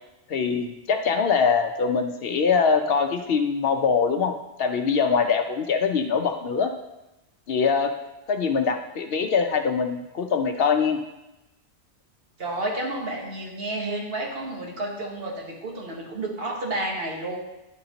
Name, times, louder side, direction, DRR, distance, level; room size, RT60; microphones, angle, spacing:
voice 1, 0.3-4.3 4.6-6.7 7.5-7.9 8.3-11.0, left 5 dB, 65° left, 6 dB, 0.7 m, -23 dB
voice 2, 12.4-17.4, right 2 dB, 60° right, 0 dB, 1.5 m, -31 dB
10.5 x 4.2 x 3.9 m, 0.96 s
omnidirectional pair, 1.2 m